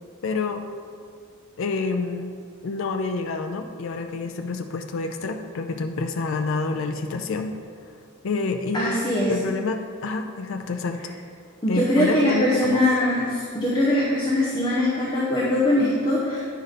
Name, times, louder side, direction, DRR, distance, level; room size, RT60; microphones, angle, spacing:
voice 1, 0.2-0.7 1.6-2.3 2.6-7.6 8.2-9.0 9.3-11.2 11.7-12.8, left 3 dB, 65° left, 5 dB, 0.4 m, -28 dB
voice 2, 8.7-9.3 11.6-16.4, left 1 dB, 20° left, -7 dB, 1.0 m, -22 dB
9.2 x 5.1 x 4.2 m, 2.2 s
head